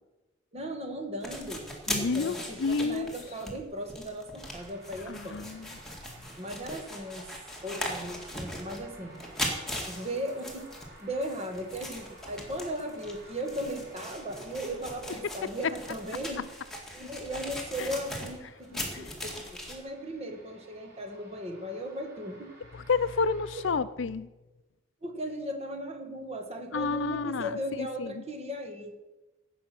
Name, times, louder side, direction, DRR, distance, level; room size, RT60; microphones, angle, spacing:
voice 1, 0.5-5.5 6.4-7.3 7.6-9.2 9.9-10.7 11.0-16.5 16.9-22.5 23.5-23.6 25.0-29.0, equal, 30° right, 5 dB, 1.6 m, -37 dB
sound 1, 1.2-19.8, left 1 dB, ahead, 2.0 m, -39 dB
voice 2, 1.9-3.2 5.1-5.7 17.8-17.9 18.9-19.1 22.7-24.3 26.7-27.5 27.8-28.1, left 4 dB, 65° left, 15 dB, 0.5 m, -30 dB
sound 2, 4.4-23.7, right 1 dB, 55° right, 2.9 m, -55 dB
16.5 x 6.4 x 6.0 m, 1.1 s
head